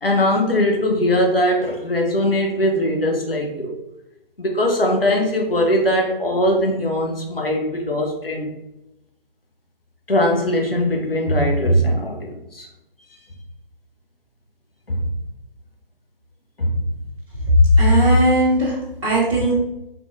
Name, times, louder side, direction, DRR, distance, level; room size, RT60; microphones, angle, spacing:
voice 1, 0.0-3.7 4.4-8.5 10.1-12.7 14.9-15.1 16.6-16.8, equal, 75° left, 1 dB, 0.9 m, -20 dB
voice 2, 17.8-19.5, right 1 dB, 30° right, -9 dB, 1.0 m, -17 dB
3.7 x 2.9 x 2.6 m, 0.92 s
figure-of-eight pair, 150°, 29 cm